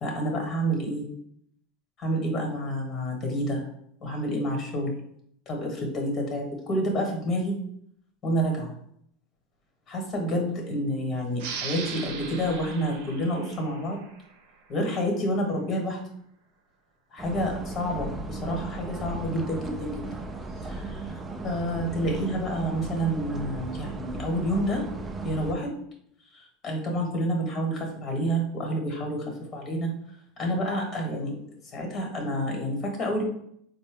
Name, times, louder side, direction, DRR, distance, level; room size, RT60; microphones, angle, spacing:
voice 1, 0.0-1.1 2.0-3.6 4.0-5.0 5.5-7.6 8.2-8.7 9.9-14.0 14.7-16.0 17.1-20.0 20.6-24.8 25.2-25.7 26.3-29.9 30.4-31.4 31.7-33.2, equal, 40° left, 1 dB, 1.3 m, -29 dB
sound 1, 11.4-14.6, right 6 dB, 70° right, 0.6 m, -39 dB
sound 2, 17.2-25.5, right 2 dB, 20° right, 0.4 m, -36 dB
4.0 x 2.2 x 3.6 m, 0.69 s
hypercardioid pair, 105°, 0 cm